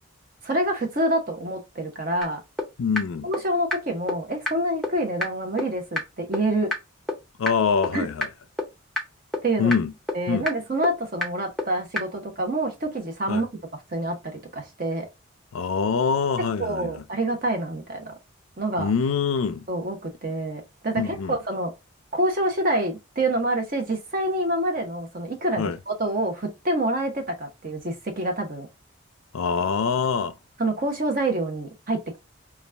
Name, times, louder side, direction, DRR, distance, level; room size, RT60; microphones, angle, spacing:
voice 1, 0.4-2.4 3.2-6.7 7.9-8.1 9.4-9.7 10.1-13.5 13.9-15.1 16.6-18.1 18.6-18.9 19.7-21.7 22.1-28.7 30.6-32.2, right 1 dB, 45° right, 0.9 m, -27 dB
sound 1, 2.2-2.3 2.6-2.7 3.0-3.1 3.3-3.4 3.7-3.8 4.1-4.2 4.5-4.6 4.8-4.9 5.2-5.3 5.6-5.7 6.0-6.1 6.3-6.4 6.7-6.8 7.1-7.2 7.5-7.6 7.8-7.9 8.2-8.3 8.6-8.7 9.0-9.1 9.3-9.4 9.7-9.8 10.1-10.2 10.5-10.6 10.8-10.9 11.2-11.3 11.6-11.7 12.0-12.1, left 1 dB, ahead, 0.5 m, -25 dB
voice 2, 2.8-3.3 7.4-8.3 9.6-9.9 10.3-10.5 13.3-13.4 15.5-17.0 18.8-19.6 21.0-21.4 25.6-25.8 29.3-30.3, left 5 dB, 80° left, 0.4 m, -24 dB
4.0 x 2.4 x 3.3 m
head